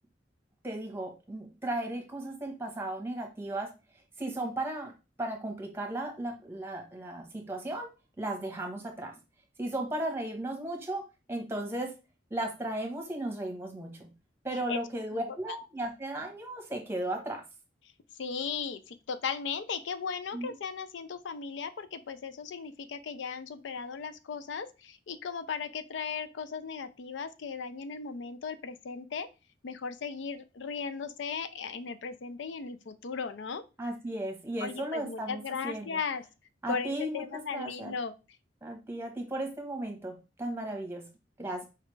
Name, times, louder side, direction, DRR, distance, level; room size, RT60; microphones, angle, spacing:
voice 1, 0.6-3.7 4.2-4.9 5.2-7.9 8.2-9.1 9.6-11.0 11.3-11.9 12.3-14.1 14.4-17.4 20.3-20.5 33.8-36.0 36.6-37.9 38.6-41.0 41.4-41.6, right 1 dB, 15° right, 2 dB, 1.0 m, -35 dB
voice 2, 15.1-15.6 18.1-29.3 29.6-33.6 34.6-36.2 36.7-38.1, left 5 dB, 80° left, 11 dB, 0.4 m, -37 dB
4.9 x 3.3 x 3.1 m, 0.29 s
head